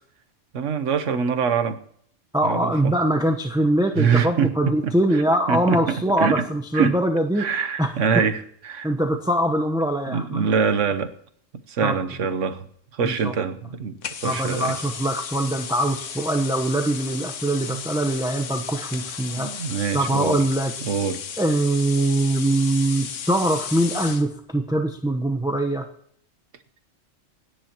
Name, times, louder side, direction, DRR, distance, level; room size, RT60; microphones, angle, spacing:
voice 1, 0.5-1.8 2.4-2.9 4.0-5.2 5.5-6.5 6.7-7.0 7.4-8.9 10.1-11.1 11.7-12.7 12.9-14.0 14.2-14.8 17.7-17.8 19.4-20.4 20.8-21.2, right 6 dB, 75° right, 9 dB, 1.3 m, -24 dB
voice 2, 2.3-7.5 7.8-7.9 8.8-10.5 11.8-12.0 13.0-13.3 14.2-19.5 19.9-20.7 21.4-25.9, right 1 dB, 5° right, 4 dB, 0.8 m, -23 dB
sound 1, 14.0-24.3, left 7 dB, 80° left, 1.3 m, -34 dB
27.5 x 10.0 x 3.0 m, 0.64 s
omnidirectional pair, 1.3 m